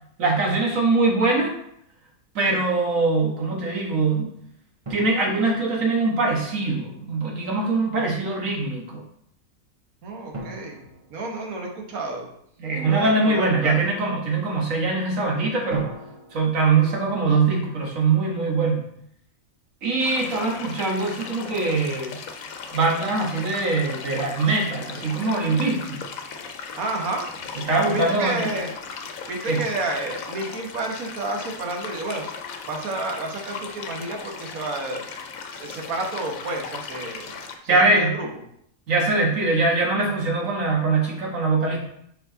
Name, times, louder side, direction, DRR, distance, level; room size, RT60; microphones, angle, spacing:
voice 1, 0.2-1.5 2.3-4.3 4.9-9.0 12.6-15.9 16.3-18.8 19.8-22.2 22.7-26.0 27.7-28.5 29.4-29.6 37.7-38.1 38.9-41.8, right 3 dB, 70° right, -1 dB, 1.7 m, -22 dB
sound 1, 4.8-6.5 10.3-12.2 15.7-18.0, right 1 dB, 25° right, 1.1 m, -41 dB
voice 2, 10.0-10.8 11.1-12.3 12.8-13.9 26.7-27.2 27.5-28.7 29.3-32.3 32.7-35.0 35.6-37.4 37.6-38.3, right 2 dB, 85° right, 1 dB, 1.6 m, -30 dB
sound 2, 20.0-37.6, left 5 dB, 80° left, 1.1 m, -37 dB
5.4 x 4.6 x 3.9 m, 0.72 s
omnidirectional pair, 1.4 m